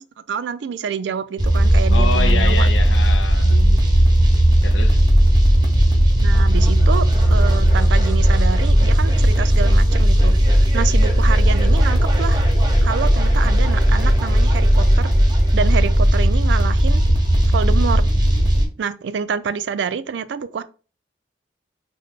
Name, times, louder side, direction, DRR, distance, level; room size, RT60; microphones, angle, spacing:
voice 1, 0.0-2.7 3.5-3.8 6.2-12.5 12.8-15.1 15.5-17.0 17.5-18.0 18.8-20.6, right 6 dB, 70° right, 0.3 m, -27 dB
sound 1, 1.4-18.7, equal, 25° right, 0.8 m, -15 dB
voice 2, 1.9-3.6 4.6-5.0, left 4 dB, 90° left, 0.6 m, -26 dB
3.2 x 2.2 x 4.0 m
head